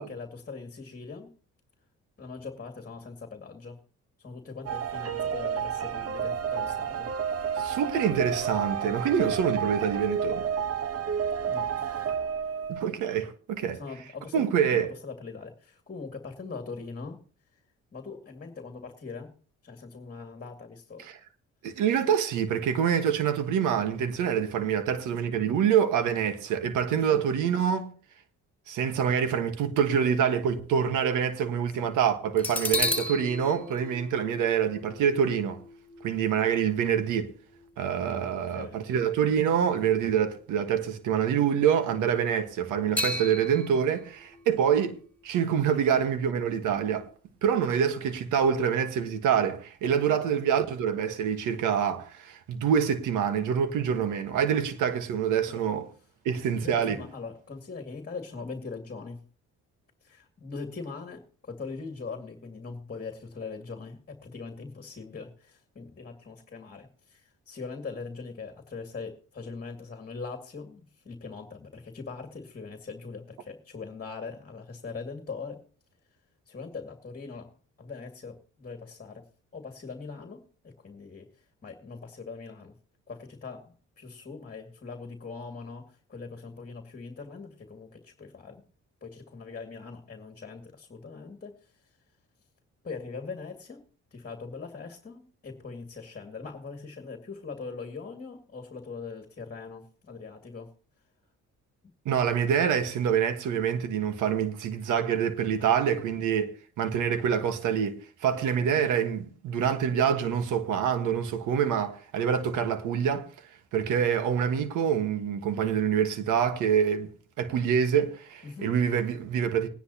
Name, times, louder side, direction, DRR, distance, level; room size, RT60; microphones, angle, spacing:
voice 1, 0.0-1.3 2.2-3.8 4.2-7.8 11.5-12.3 13.7-14.5 14.7-17.2 17.5-17.6 17.9-19.3 19.6-21.1 26.9-27.2 31.6-31.9 38.3-38.8 45.7-46.1 50.1-50.3 55.5-55.6 56.5-59.2 60.0-75.6 76.5-77.5 77.8-79.2 79.5-82.8 83.1-88.7 89.0-91.9 92.8-93.8 94.1-100.7 105.6-105.7 118.4-118.7, left 4 dB, 30° left, 2.3 m, -41 dB
sound 1, 4.7-12.8, right 7 dB, 50° right, 1.1 m, -30 dB
voice 2, 7.6-10.5 12.7-13.8 14.3-14.9 21.0-21.2 21.6-27.9 28.7-35.6 36.0-37.3 37.8-45.0 45.2-47.1 47.4-55.9 56.2-57.0 102.0-113.3 113.7-117.1 117.4-119.7, right 8 dB, 90° right, 1.4 m, -26 dB
sound 2, 29.4-30.9 31.4-31.5 32.4-39.8 40.1-40.3 43.0-46.7 47.1-47.2, left 2 dB, 5° left, 7.8 m, -36 dB
20.0 x 10.5 x 2.8 m
cardioid pair, 90°, 30 cm